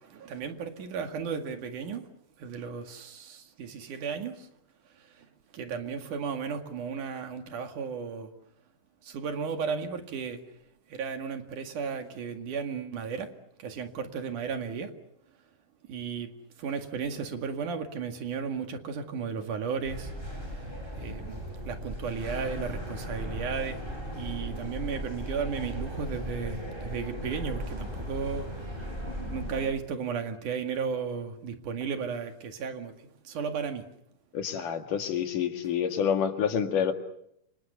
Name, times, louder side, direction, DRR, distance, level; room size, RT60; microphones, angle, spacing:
voice 1, 0.0-2.1 2.4-4.5 4.9-8.3 9.0-10.4 10.9-13.3 13.6-14.9 15.8-20.1 20.4-23.8 24.1-28.9 29.3-33.9, right 6 dB, 75° right, 3.6 m, -35 dB
sound 1, 19.8-29.7, equal, 15° right, 7.1 m, -37 dB
voice 2, 34.3-36.9, left 8 dB, 80° left, 3.6 m, -28 dB
30.0 x 25.5 x 6.9 m
omnidirectional pair, 3.7 m